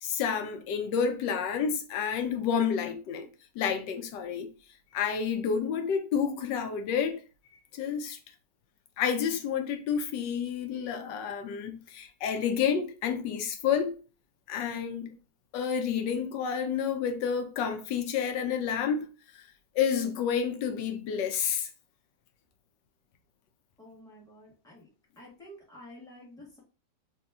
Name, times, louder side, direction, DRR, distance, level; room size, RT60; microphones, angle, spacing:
voice 1, 0.0-3.3 3.6-4.5 4.9-7.2 7.5-8.2 9.0-13.9 14.5-15.1 15.5-19.4 19.7-21.7, left 7 dB, 85° left, 1.3 m, -30 dB
voice 2, 23.8-24.9 25.2-26.6, left 1 dB, ahead, 1.3 m, -50 dB
3.2 x 2.9 x 3.4 m
omnidirectional pair, 1.8 m